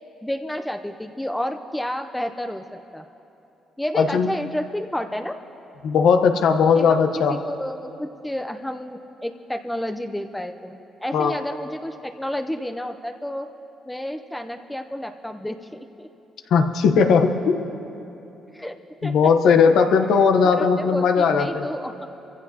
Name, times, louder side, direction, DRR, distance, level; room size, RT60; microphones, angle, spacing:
voice 1, 0.2-3.0 3.8-5.4 6.7-7.0 7.3-13.5 13.9-16.1 18.5-18.8 19.0-19.3 20.4-21.9, left 1 dB, 5° left, 6 dB, 0.6 m, -30 dB
voice 2, 3.9-4.3 5.8-7.4 11.1-11.4 16.5-17.6 19.0-21.7, left 5 dB, 75° left, 6 dB, 0.9 m, -18 dB
24.0 x 15.0 x 2.8 m, 3.0 s
cardioid pair, 90°, 0 cm